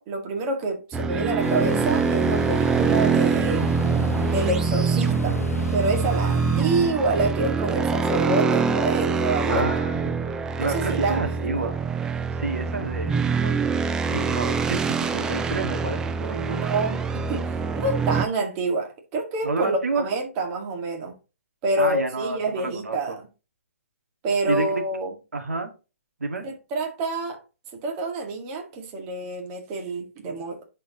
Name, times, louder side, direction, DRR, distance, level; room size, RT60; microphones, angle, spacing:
voice 1, 0.0-3.7 4.2-5.4 5.7-9.7 10.6-11.4 16.2-17.0 17.3-21.1 21.6-23.3 24.2-25.1 26.4-27.4 27.8-30.7, right 2 dB, 25° right, 1.9 m, -27 dB
sound 1, 0.9-18.3, right 5 dB, 10° right, 0.4 m, -24 dB
sound 2, 1.4-6.9, left 4 dB, 90° left, 0.8 m, -33 dB
voice 2, 9.5-10.1 10.6-11.7 12.4-16.7 19.4-20.1 21.8-23.2 24.5-24.8 25.3-25.7 26.2-26.4, right 3 dB, 80° right, 1.8 m, -30 dB
10.5 x 4.5 x 2.9 m
hypercardioid pair, 145°, 8 cm